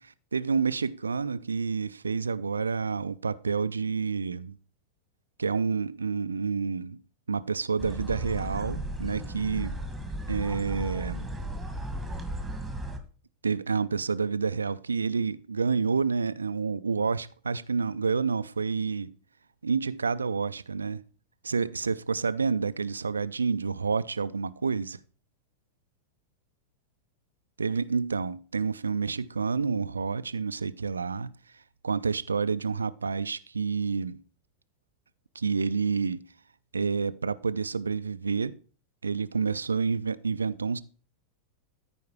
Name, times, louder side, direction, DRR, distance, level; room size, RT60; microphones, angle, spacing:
voice 1, 0.3-4.6 5.4-7.0 7.3-9.8 10.3-11.3 13.4-19.1 19.6-21.0 21.4-25.0 27.6-31.3 31.8-34.2 35.4-36.2 36.7-38.6 39.0-40.8, right 5 dB, 75° right, 0.4 m, -29 dB
sound 1, 7.8-13.0, right 1 dB, 5° right, 1.6 m, -35 dB
14.0 x 4.7 x 4.6 m
figure-of-eight pair, 90°, 0 cm